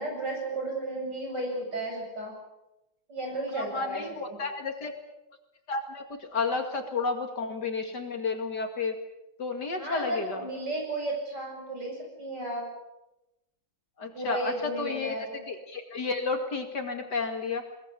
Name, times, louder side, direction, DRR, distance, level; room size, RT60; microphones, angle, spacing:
voice 1, 0.0-2.3 3.1-4.4 9.8-12.7 14.1-15.4, right 1 dB, 55° right, 1 dB, 8.6 m, -34 dB
voice 2, 3.5-4.9 5.7-9.0 9.4-10.4 14.0-15.2 15.5-17.6, left 4 dB, 55° left, 5 dB, 2.8 m, -31 dB
22.0 x 21.0 x 8.4 m, 0.93 s
omnidirectional pair, 2.2 m